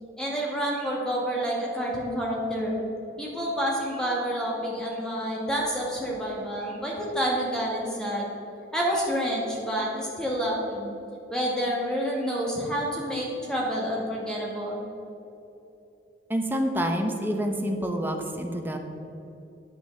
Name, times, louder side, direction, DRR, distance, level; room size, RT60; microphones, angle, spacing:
voice 1, 0.2-2.7 3.2-8.3 8.7-10.9 11.3-14.9, equal, 5° left, -3 dB, 2.0 m, -28 dB
voice 2, 16.3-18.8, equal, 10° right, 3 dB, 0.9 m, -27 dB
9.7 x 6.0 x 7.8 m, 2.8 s
head